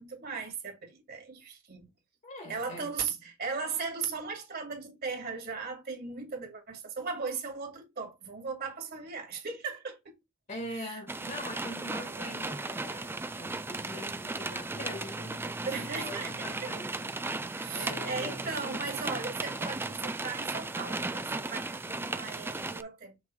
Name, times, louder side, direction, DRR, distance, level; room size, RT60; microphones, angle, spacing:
voice 1, 0.0-1.8 2.5-10.1 10.7-11.0 12.0-12.3 15.6-16.7 17.6-23.2, right 5 dB, 50° right, 2.4 m, -37 dB
voice 2, 2.2-3.2 10.5-17.1 17.7-18.9 21.9-22.4, left 1 dB, 40° left, 2.0 m, -43 dB
sound 1, 11.1-22.8, right 3 dB, 10° right, 0.4 m, -36 dB
6.4 x 3.4 x 4.6 m
head